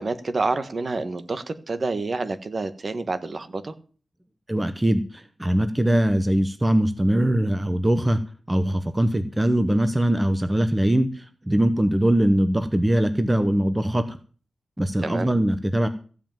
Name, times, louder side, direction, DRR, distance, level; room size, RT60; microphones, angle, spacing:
voice 1, 0.0-3.7 15.0-15.3, right 3 dB, 40° right, 10 dB, 1.3 m, -28 dB
voice 2, 4.5-8.2 8.5-14.2 14.8-15.9, right 1 dB, 10° right, 9 dB, 0.9 m, -22 dB
15.0 x 5.6 x 9.0 m, 0.40 s
wide cardioid pair, 130°, 0 cm